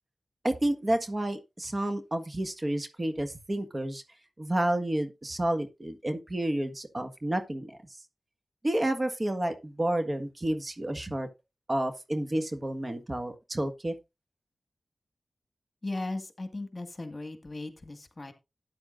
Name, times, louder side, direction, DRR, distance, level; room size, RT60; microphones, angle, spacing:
voice 1, 0.4-4.0 4.4-7.8 8.6-11.3 11.7-13.9, right 1 dB, 35° right, 1.6 m, -30 dB
voice 2, 15.8-18.3, left 2 dB, 40° left, 1.9 m, -37 dB
12.5 x 9.4 x 2.6 m
cardioid pair, 45°, 0 cm